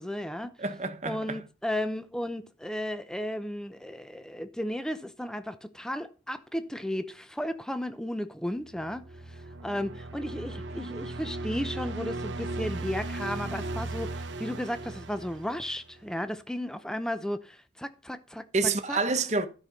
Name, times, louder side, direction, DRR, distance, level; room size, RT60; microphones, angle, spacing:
voice 1, 0.0-0.5 1.0-9.0 9.6-18.4 18.9-19.0, left 1 dB, 5° left, 0.7 m, -34 dB
voice 2, 0.6-1.4 18.5-19.5, right 3 dB, 40° right, 1.1 m, -28 dB
sound 1, 8.7-16.1, right 2 dB, 85° right, 1.0 m, -37 dB
13.0 x 6.0 x 5.2 m
head